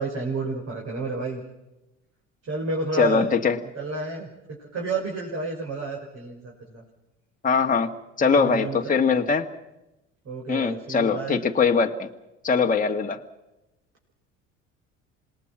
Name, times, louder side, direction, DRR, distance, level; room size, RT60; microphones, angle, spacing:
voice 1, 0.0-1.4 2.5-3.3 3.7-4.3 4.6-6.8 8.3-8.8 9.1-9.4 10.2-11.4, right 3 dB, 45° right, -2 dB, 5.9 m, -30 dB
voice 2, 3.0-3.6 7.4-7.9 8.2-9.5 10.5-12.1 12.4-13.2, left 5 dB, 20° left, 2 dB, 1.7 m, -22 dB
27.0 x 20.0 x 6.1 m, 0.96 s
hypercardioid pair, 70°, 36 cm